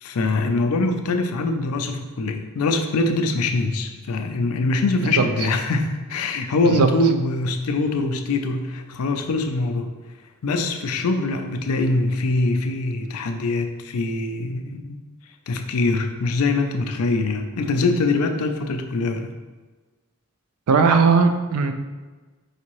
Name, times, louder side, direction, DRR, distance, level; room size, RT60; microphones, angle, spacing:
voice 1, 0.0-9.9 10.4-15.0 15.5-19.3, left 2 dB, 80° left, 6 dB, 0.4 m, -23 dB
voice 2, 20.7-21.7, right 5 dB, 80° right, 7 dB, 0.4 m, -17 dB
4.9 x 2.7 x 3.0 m, 1.3 s
head